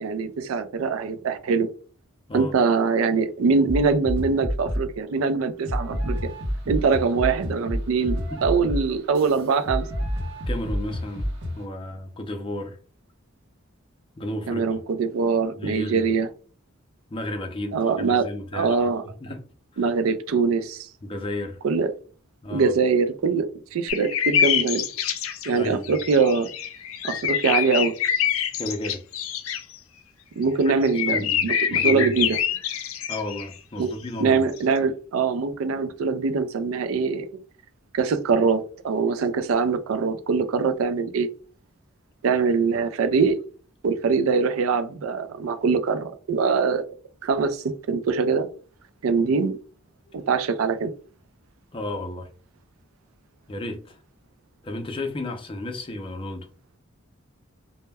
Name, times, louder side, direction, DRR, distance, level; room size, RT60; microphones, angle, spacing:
voice 1, 0.0-1.7 2.3-6.3 6.7-9.9 14.5-16.3 17.7-19.0 19.8-20.9 21.6-21.9 22.5-24.8 25.5-26.5 27.0-28.0 30.4-32.4 33.8-33.9 34.2-37.3 37.9-41.3 42.2-43.4 43.8-46.8 47.2-48.5 49.0-49.6 50.1-50.9, right 5 dB, 80° right, 0.4 m, -23 dB
sound 1, 3.7-5.0 5.7-11.6, equal, 60° right, 0.7 m, -29 dB
voice 2, 8.0-8.4 10.5-12.8 14.2-14.8 15.6-16.1 17.1-18.9 19.2-19.4 19.7-19.9 21.0-21.6 22.4-22.7 25.5-25.9 28.6-29.0 31.1-32.3 33.1-34.4 50.1-50.3 51.7-52.3 53.5-54.0 54.6-56.5, left 1 dB, 25° left, 0.4 m, -33 dB
sound 2, 23.9-25.6 25.8-29.6 30.4-33.5 34.6-34.7, left 9 dB, 80° left, 0.4 m, -25 dB
2.1 x 2.1 x 3.3 m
head